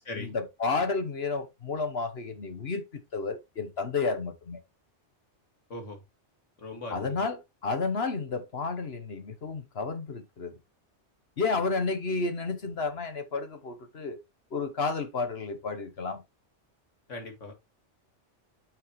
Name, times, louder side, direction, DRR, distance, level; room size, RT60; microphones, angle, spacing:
voice 1, 0.1-4.6 6.9-10.6 11.4-14.2 14.5-16.2, left 4 dB, 60° left, 1.4 m, -31 dB
voice 2, 5.7-6.0 6.6-7.2 17.1-17.5, left 2 dB, 80° left, 2.5 m, -39 dB
8.6 x 6.2 x 3.1 m
omnidirectional pair, 1.2 m